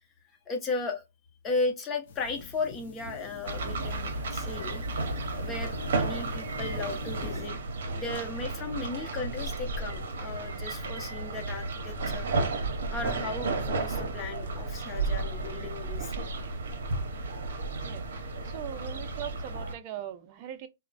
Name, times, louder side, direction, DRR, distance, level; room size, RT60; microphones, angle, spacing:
voice 1, 0.5-1.0 1.4-4.8 5.4-7.6 7.9-12.3 12.9-16.1, left 3 dB, 20° left, 0.8 m, -35 dB
sound 1, 2.1-7.5, left 4 dB, 55° left, 0.7 m, -44 dB
sound 2, 3.5-19.7, right 3 dB, 70° right, 0.7 m, -33 dB
voice 2, 18.4-20.7, right 11 dB, 35° right, 0.5 m, -40 dB
3.0 x 2.1 x 2.5 m
hypercardioid pair, 140°, 0 cm